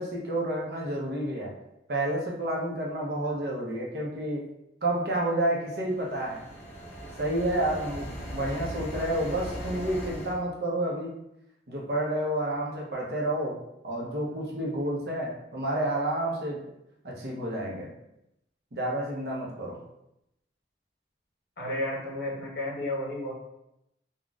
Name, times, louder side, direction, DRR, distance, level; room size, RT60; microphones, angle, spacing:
voice 1, 0.0-1.5 1.9-4.5 4.8-6.4 7.2-11.1 11.7-13.6 13.8-16.6 17.0-17.9 18.7-19.8, right 1 dB, 60° right, -2 dB, 0.7 m, -30 dB
sound 1, 5.7-10.4, equal, 35° left, 0.6 m, -39 dB
voice 2, 21.6-23.3, left 1 dB, 65° left, -4 dB, 1.0 m, -32 dB
3.9 x 2.3 x 2.3 m, 0.83 s
head